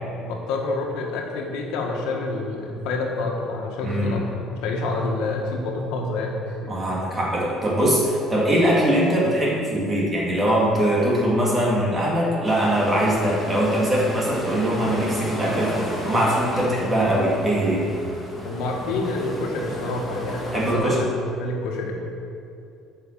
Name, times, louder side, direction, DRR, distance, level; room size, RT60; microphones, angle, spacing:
voice 1, 0.2-6.7 16.5-16.7 18.4-21.9, left 2 dB, 85° left, 0 dB, 1.6 m, -28 dB
voice 2, 3.8-4.2 6.7-15.7 16.0-17.9 20.5-21.0, right 1 dB, 15° right, -5 dB, 2.4 m, -21 dB
sound 1, 12.4-20.8, equal, 5° left, 1.9 m, -34 dB
9.2 x 5.9 x 7.4 m, 2.6 s
cardioid pair, 155°, 0 cm